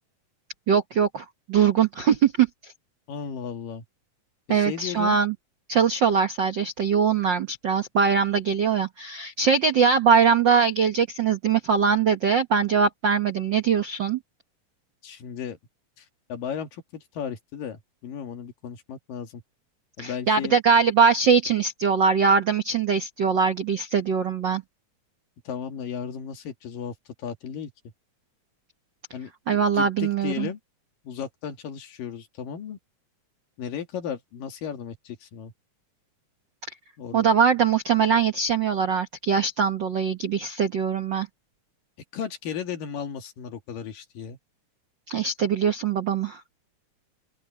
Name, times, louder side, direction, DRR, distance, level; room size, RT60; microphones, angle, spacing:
voice 1, 0.7-2.5 4.5-5.3 5.7-14.2 20.0-24.6 29.5-30.5 37.1-41.3 45.1-46.4, right 6 dB, 65° right, 1.1 m, -22 dB
voice 2, 3.1-3.8 4.5-5.2 15.0-15.6 16.0-19.4 20.0-20.6 25.5-27.7 29.1-30.6 31.0-32.8 33.6-35.5 37.0-37.3 42.1-44.4, left 8 dB, 85° left, 3.8 m, -35 dB
open air
omnidirectional pair, 3.8 m